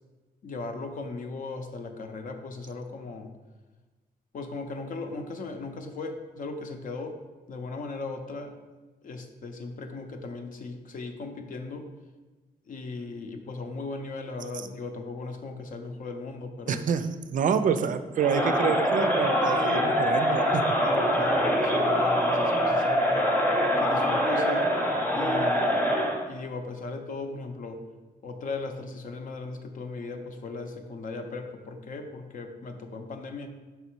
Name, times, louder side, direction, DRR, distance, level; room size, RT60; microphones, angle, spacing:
voice 1, 0.4-3.3 4.3-7.2 7.5-8.5 9.0-11.9 12.7-16.8 20.8-23.3 23.8-24.7 25.1-25.9 26.3-27.8 28.2-33.5, left 3 dB, 55° left, 5 dB, 0.7 m, -37 dB
voice 2, 16.7-20.6, right 7 dB, 55° right, 11 dB, 0.4 m, -27 dB
Crowd, 18.2-26.2, equal, 10° left, 0.8 m, -24 dB
5.7 x 4.0 x 4.5 m, 1.2 s
cardioid pair, 120°, 16 cm